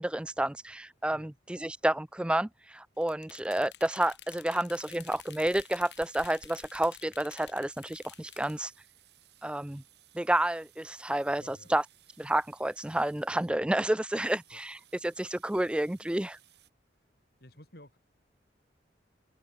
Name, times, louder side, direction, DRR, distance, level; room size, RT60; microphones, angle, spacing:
voice 1, 0.0-8.7 9.4-9.8 10.1-11.8 12.2-16.4, right 1 dB, 5° right, 0.3 m, -30 dB
sound 1, 3.0-8.6, left 10 dB, 70° left, 2.7 m, -51 dB
sound 2, 4.7-16.7, right 13 dB, 65° right, 6.3 m, -62 dB
voice 2, 11.4-11.7 14.5-14.6 16.9-17.1 17.4-18.0, left 1 dB, 55° left, 5.8 m, -53 dB
head